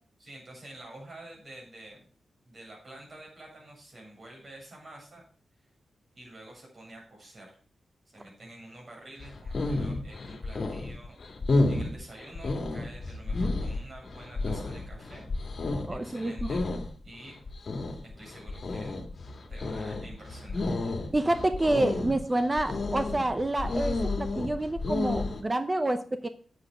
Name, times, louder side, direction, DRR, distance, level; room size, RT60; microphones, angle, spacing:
voice 1, 0.2-2.1 2.4-5.2 6.1-7.6 8.1-11.2 11.7-15.3 15.9-16.6 17.0-17.4 18.0-18.9 19.5-21.1, right 1 dB, 35° right, -3 dB, 7.5 m, -48 dB
sound 1, 9.2-25.4, left 2 dB, 45° left, 2.2 m, -31 dB
voice 2, 15.9-16.5 21.1-26.3, right 1 dB, 20° right, 9 dB, 0.7 m, -28 dB
9.8 x 7.8 x 6.1 m, 0.42 s
wide cardioid pair, 155°, 0 cm